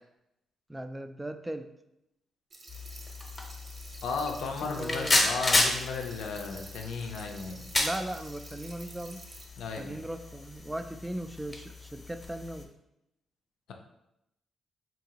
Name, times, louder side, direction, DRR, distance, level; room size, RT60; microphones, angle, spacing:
voice 1, 0.7-1.6 4.4-5.2 7.8-9.2 9.8-12.7, right 1 dB, 15° right, 8 dB, 0.4 m, -38 dB
sound 1, 2.5-9.4, right 2 dB, 50° right, 0.7 m, -50 dB
sound 2, 2.7-12.6, left 2 dB, 30° left, 0.8 m, -33 dB
voice 2, 4.0-7.6 9.6-10.0, left 4 dB, 80° left, 3 dB, 0.5 m, -35 dB
3.7 x 2.8 x 2.8 m, 0.84 s
supercardioid pair, 60°, 0 cm